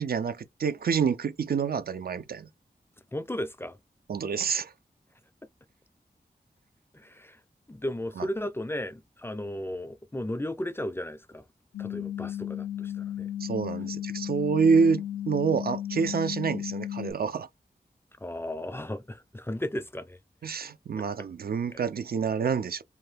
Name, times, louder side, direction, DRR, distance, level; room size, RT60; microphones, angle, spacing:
voice 1, 0.0-2.5 4.1-4.7 8.2-8.3 13.4-17.5 20.4-22.8, right 5 dB, 70° right, 0.4 m, -27 dB
voice 2, 3.1-3.8 6.9-7.4 7.7-11.4 11.8-13.3 18.2-20.2 21.0-21.1 21.7-21.8, left 1 dB, 15° left, 0.4 m, -35 dB
sound 1, 11.7-17.1, left 11 dB, 75° left, 0.5 m, -34 dB
2.8 x 2.2 x 3.3 m
wide cardioid pair, 60°, 17 cm